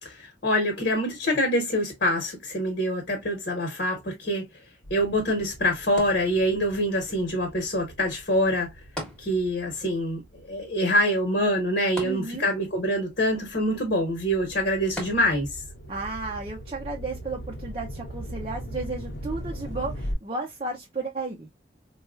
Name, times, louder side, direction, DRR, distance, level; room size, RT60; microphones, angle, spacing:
voice 1, 0.0-4.5 4.9-8.7 9.2-15.5, equal, 60° left, 1.2 m, -25 dB
sound 1, 4.8-11.6 12.2-20.1, equal, 80° left, 0.9 m, -40 dB
sound 2, 6.0-6.9 9.0-9.8 10.1-10.2 12.0-12.8 15.0-15.7 16.4-16.5, equal, 5° left, 1.0 m, -39 dB
voice 2, 12.0-12.5 15.9-21.5, right 3 dB, 30° right, 0.5 m, -33 dB
4.2 x 2.3 x 2.4 m
head